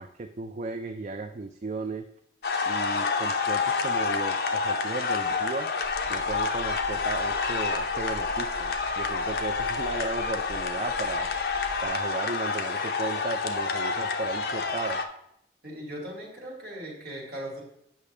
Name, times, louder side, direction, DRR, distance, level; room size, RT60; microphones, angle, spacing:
voice 1, 0.0-2.1 2.6-5.7 6.1-11.3 11.8-15.0, right 3 dB, 40° right, 6 dB, 0.3 m, -35 dB
sound 1, 2.4-15.0, left 4 dB, 60° left, 0.6 m, -28 dB
sound 2, 5.8-11.9, equal, 5° right, 1.7 m, -45 dB
voice 2, 15.6-17.6, right 1 dB, 55° right, -2 dB, 2.5 m, -38 dB
8.3 x 5.7 x 3.2 m, 0.75 s
head